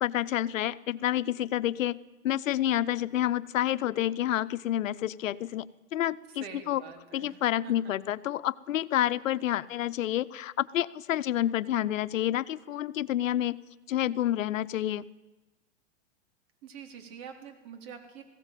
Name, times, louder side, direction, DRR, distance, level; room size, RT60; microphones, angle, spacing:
voice 1, 0.0-2.0 2.2-5.7 5.9-6.8 7.1-13.6 13.9-15.0, left 12 dB, 75° left, 14 dB, 1.0 m, -29 dB
voice 2, 6.3-7.9 16.6-18.2, right 7 dB, 50° right, 5 dB, 4.0 m, -46 dB
20.5 x 16.0 x 9.2 m, 1.1 s
hypercardioid pair, 130°, 39 cm